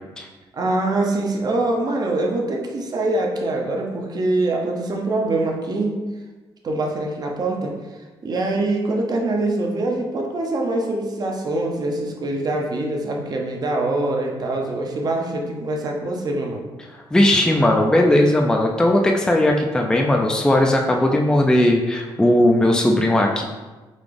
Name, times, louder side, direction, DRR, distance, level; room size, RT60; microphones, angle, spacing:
voice 1, 0.5-5.9 6.6-7.7 8.2-16.6, right 2 dB, 45° right, 1 dB, 0.7 m, -24 dB
voice 2, 16.9-23.4, left 1 dB, 5° left, 1 dB, 0.4 m, -17 dB
4.0 x 2.3 x 3.3 m, 1.2 s
cardioid pair, 85°, 9 cm